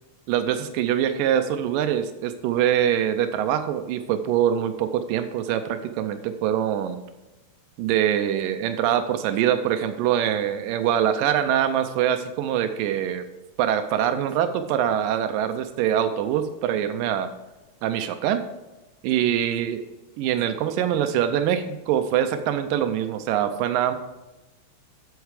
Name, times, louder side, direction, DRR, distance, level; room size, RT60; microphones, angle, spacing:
voice 1, 0.3-7.0 7.8-13.2 13.6-17.3 17.8-18.4 19.0-19.8 20.2-23.9, right 10 dB, 90° right, 8 dB, 1.9 m, -24 dB
8.4 x 8.0 x 4.8 m, 1.1 s
omnidirectional pair, 4.6 m